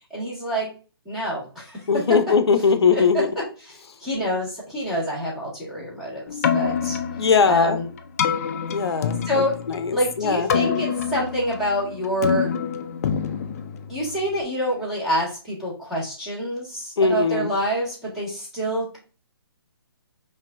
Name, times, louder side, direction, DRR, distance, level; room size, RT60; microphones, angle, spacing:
voice 1, 0.1-0.7 1.1-2.0 2.9-3.7 4.0-7.0 7.5-7.9 9.2-9.6 9.9-12.5 13.9-19.0, equal, 5° right, 1.7 m, -26 dB
voice 2, 1.9-3.3 7.2-7.8 8.7-9.2 9.7-10.5 17.0-17.5, left 5 dB, 85° left, 0.6 m, -20 dB
Keyboard (musical), 6.3-14.4, left 7 dB, 35° left, 0.4 m, -27 dB
5.3 x 2.6 x 2.5 m
hypercardioid pair, 155°, 13 cm